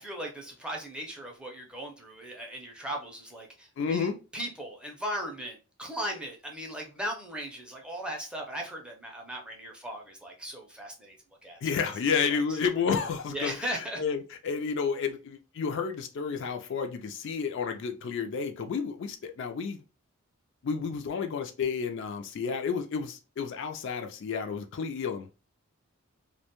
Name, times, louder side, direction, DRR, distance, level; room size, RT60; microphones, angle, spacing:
voice 1, 0.0-11.2 11.4-11.6 12.3-12.4 13.3-14.0, equal, 5° right, 0.5 m, -38 dB
voice 2, 3.8-4.1 11.6-19.8 20.6-25.4, left 6 dB, 55° left, 0.3 m, -31 dB
2.4 x 2.2 x 2.8 m
head